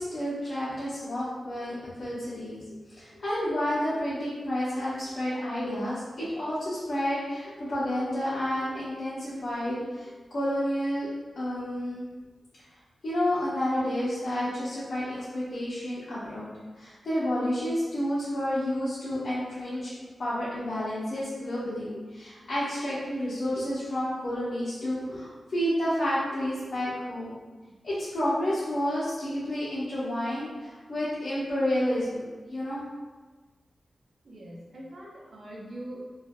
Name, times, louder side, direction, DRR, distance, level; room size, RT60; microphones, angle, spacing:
voice 1, 0.0-11.1 11.3-12.1 13.0-16.5 16.7-19.9 20.2-27.4 27.8-32.2 32.5-32.9, equal, 60° left, -12 dB, 0.9 m, -30 dB
voice 2, 34.2-36.2, right 1 dB, 65° right, -4 dB, 0.7 m, -42 dB
3.0 x 2.4 x 2.5 m, 1.3 s
wide cardioid pair, 145°, 0 cm